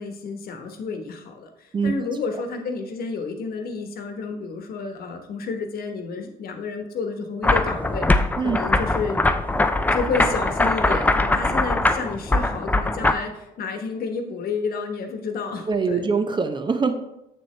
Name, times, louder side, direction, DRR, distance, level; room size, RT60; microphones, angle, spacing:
voice 1, 0.0-9.2 9.9-16.1, left 4 dB, 60° left, 5 dB, 1.2 m, -30 dB
sound 1, 7.4-13.1, left 2 dB, 10° left, 0.4 m, -21 dB
voice 2, 15.7-17.0, right 5 dB, 25° right, 8 dB, 0.7 m, -23 dB
7.4 x 6.7 x 3.3 m, 0.88 s
cardioid pair, 110°, 17 cm